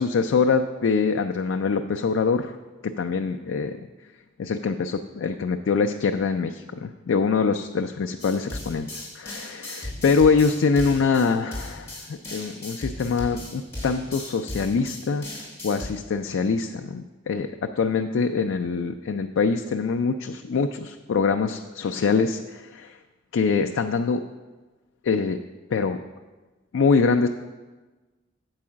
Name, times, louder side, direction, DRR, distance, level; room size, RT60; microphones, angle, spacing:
voice 1, 0.0-2.6 2.8-3.9 4.4-23.0 23.3-24.2 25.0-25.4 25.7-26.0 26.7-27.3, left 5 dB, 85° left, 6 dB, 0.4 m, -24 dB
sound 1, 8.2-15.9, left 1 dB, 15° left, 2.8 m, -37 dB
7.7 x 4.8 x 7.3 m, 1.2 s
head